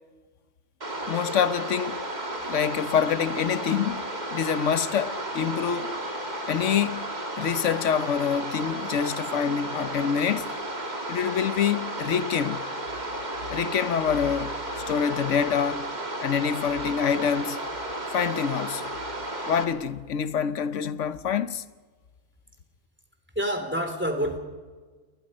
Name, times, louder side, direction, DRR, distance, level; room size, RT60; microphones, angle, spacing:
sound 1, 0.8-19.6, right 1 dB, 35° right, 2.4 m, -33 dB
voice 1, 1.1-2.0 2.5-4.0 4.3-6.0 6.5-7.1 7.4-10.5 11.1-12.6 13.5-14.5 14.9-15.9 16.2-17.6 18.1-18.9 19.5-21.6, left 7 dB, 70° left, 1.2 m, -26 dB
voice 2, 23.3-24.4, equal, 10° right, 2.9 m, -27 dB
29.0 x 22.0 x 5.4 m
omnidirectional pair, 1.4 m